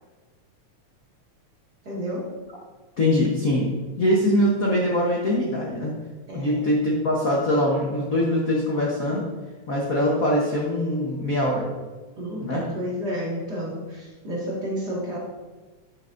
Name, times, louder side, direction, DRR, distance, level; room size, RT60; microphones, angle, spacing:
voice 1, 1.8-2.4 6.3-6.7 12.2-15.2, equal, 35° right, -5 dB, 2.3 m, -31 dB
voice 2, 3.0-3.7 4.0-5.9 6.3-9.2 9.7-11.7 12.4-12.6, left 1 dB, 70° left, -3 dB, 0.8 m, -22 dB
9.6 x 8.4 x 2.6 m, 1.3 s
omnidirectional pair, 3.3 m